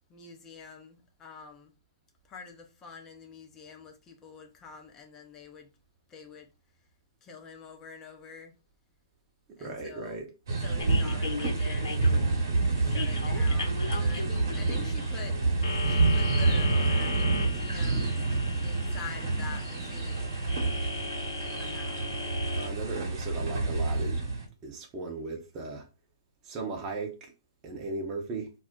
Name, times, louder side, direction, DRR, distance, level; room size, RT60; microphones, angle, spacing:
voice 1, 0.1-1.7 2.3-5.7 6.1-6.5 7.2-8.5 9.6-10.2 10.6-12.4 12.7-15.4 15.8-18.2 18.6-20.4 21.6-22.1, left 5 dB, 20° left, 0.5 m, -46 dB
voice 2, 9.6-10.3 22.5-24.2 24.6-25.9 26.4-27.3 27.6-28.5, right 3 dB, 25° right, 0.7 m, -37 dB
sound 1, 10.5-24.5, right 3 dB, 60° right, 1.0 m, -28 dB
sound 2, 10.8-22.7, left 4 dB, 75° left, 0.7 m, -38 dB
2.3 x 2.1 x 3.6 m
hypercardioid pair, 135°, 2 cm